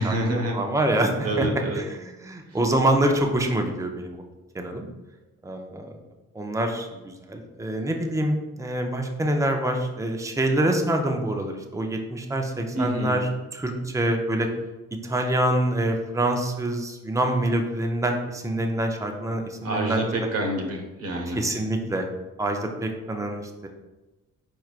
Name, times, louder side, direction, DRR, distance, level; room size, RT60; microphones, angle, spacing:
voice 1, 0.0-0.6 1.2-1.8 2.5-2.6 12.7-13.2 19.6-21.4, right 1 dB, 55° right, 1 dB, 1.1 m, -27 dB
voice 2, 0.5-1.5 2.0-4.2 4.5-4.9 5.4-5.9 6.3-14.5 15.0-20.0 21.3-22.1 22.4-23.7, right 1 dB, 10° right, 3 dB, 0.6 m, -26 dB
4.7 x 4.6 x 2.4 m, 1.1 s
cardioid pair, 90°, 30 cm